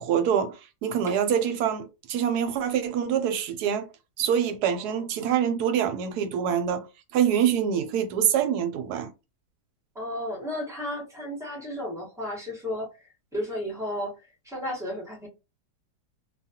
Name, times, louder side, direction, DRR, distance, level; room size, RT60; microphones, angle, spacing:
voice 1, 0.0-3.9 4.2-6.9 7.1-9.1, right 8 dB, 75° right, 1.1 m, -25 dB
voice 2, 4.7-5.1 9.9-12.9 13.3-14.1 14.4-15.3, left 1 dB, ahead, 0.9 m, -33 dB
2.7 x 2.3 x 2.7 m
omnidirectional pair, 1.8 m